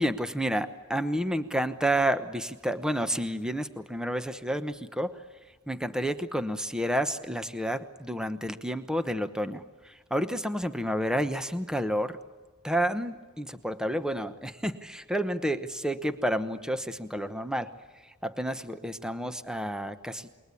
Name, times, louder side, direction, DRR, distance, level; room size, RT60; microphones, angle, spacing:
voice 1, 0.0-5.2 5.7-12.2 12.6-17.7 18.0-20.3, equal, 5° right, 10 dB, 1.0 m, -30 dB
28.0 x 22.5 x 8.3 m, 1.3 s
head